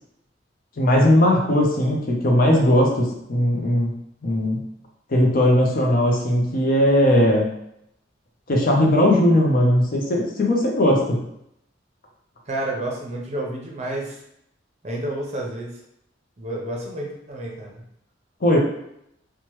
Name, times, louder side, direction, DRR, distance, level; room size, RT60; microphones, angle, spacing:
voice 1, 0.8-3.9 4.2-4.6 5.1-7.5 8.5-11.2 18.4-18.6, left 1 dB, 50° left, 0 dB, 0.5 m, -18 dB
voice 2, 12.5-14.2 14.8-15.8 16.4-17.8, right 1 dB, 35° right, -2 dB, 0.7 m, -30 dB
2.9 x 2.2 x 3.0 m, 0.77 s
head